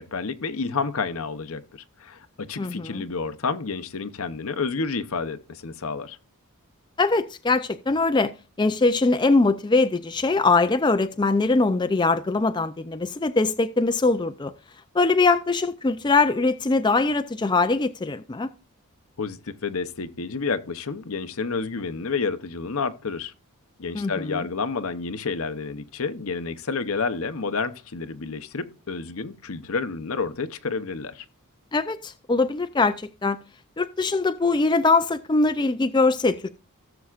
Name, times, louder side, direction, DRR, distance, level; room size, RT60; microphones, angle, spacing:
voice 1, 0.0-6.2 19.2-23.3 23.8-31.2, left 4 dB, 70° left, 0.8 m, -30 dB
voice 2, 2.6-3.0 7.0-8.3 8.6-14.5 14.9-18.5 23.9-24.4 31.7-33.4 33.8-36.5, left 3 dB, 20° left, 0.4 m, -22 dB
17.5 x 6.9 x 2.5 m
head